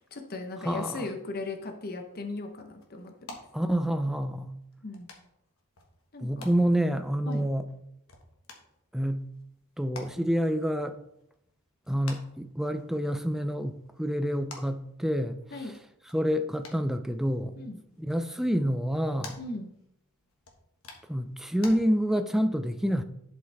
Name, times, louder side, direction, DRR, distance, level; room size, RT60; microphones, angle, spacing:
voice 1, 0.0-3.4 4.8-5.1 6.1-6.5 7.3-7.4 15.5-15.7 17.6-17.8 19.4-19.7, left 3 dB, 45° left, 0.9 m, -37 dB
voice 2, 0.6-1.1 3.5-4.5 6.2-7.7 8.9-9.3 9.8-11.0 11.9-15.7 16.1-17.5 18.0-19.4 21.1-23.0, equal, ahead, 0.4 m, -28 dB
sound 1, 1.9-21.7, left 3 dB, 80° left, 1.5 m, -52 dB
11.0 x 5.5 x 3.4 m
head